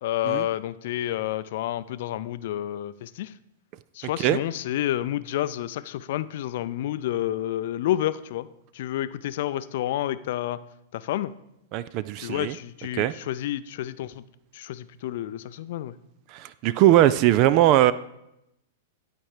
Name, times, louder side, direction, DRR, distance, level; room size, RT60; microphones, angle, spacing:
voice 1, 0.0-3.3 3.9-8.5 8.7-10.6 10.9-11.3 12.2-14.2 14.5-15.9, left 13 dB, 60° left, 15 dB, 0.4 m, -29 dB
voice 2, 11.7-12.6 12.9-13.1 16.3-17.9, right 13 dB, 45° right, 16 dB, 0.3 m, -20 dB
11.5 x 4.4 x 4.9 m, 0.83 s
hypercardioid pair, 120°, 0 cm